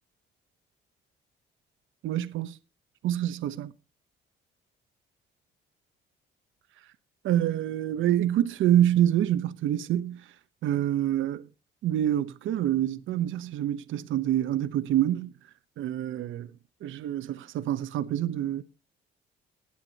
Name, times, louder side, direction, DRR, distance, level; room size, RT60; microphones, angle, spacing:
voice 1, 2.0-2.6 3.0-3.7 7.2-10.2 10.6-11.5 11.8-15.3 15.8-16.5 16.8-18.6, right 11 dB, 80° right, 0.9 m, -26 dB
18.0 x 8.2 x 4.1 m
cardioid pair, 90°, 20 cm